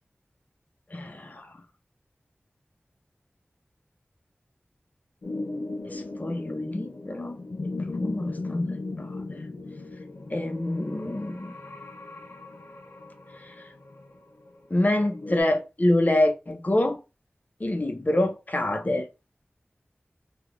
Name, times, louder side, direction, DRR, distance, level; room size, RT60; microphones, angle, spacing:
voice 1, 0.9-1.5 5.9-7.4 7.9-9.4 10.3-11.5 14.7-17.0 17.6-19.1, left 1 dB, 40° left, 0.7 m, -26 dB
sound 1, 5.2-15.4, left 2 dB, 85° left, 0.6 m, -37 dB
3.4 x 2.2 x 3.1 m
wide cardioid pair, 40°, 4 cm